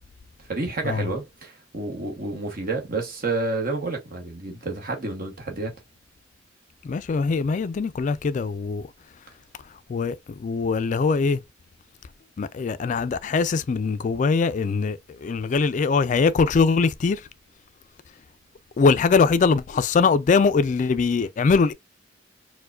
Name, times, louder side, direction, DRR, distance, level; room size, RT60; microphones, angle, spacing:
voice 1, 0.5-5.7, right 3 dB, 50° right, 1.0 m, -29 dB
voice 2, 6.8-8.9 9.9-11.4 12.4-17.3 18.8-21.7, left 4 dB, 40° left, 0.3 m, -22 dB
4.6 x 2.2 x 2.3 m
head